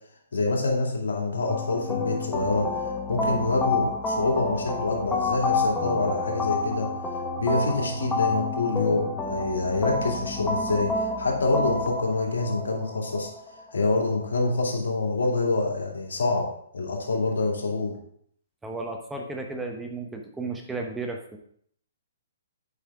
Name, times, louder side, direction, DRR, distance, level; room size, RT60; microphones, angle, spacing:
voice 1, 0.3-6.9 7.4-13.3 13.7-16.5 16.7-18.0, left 3 dB, 80° left, -1 dB, 2.4 m, -26 dB
sound 1, 1.5-14.4, left 3 dB, 10° left, 1.2 m, -29 dB
voice 2, 18.6-21.4, right 3 dB, 10° right, 2 dB, 0.9 m, -34 dB
8.2 x 5.4 x 3.6 m, 0.64 s
hypercardioid pair, 135°, 0 cm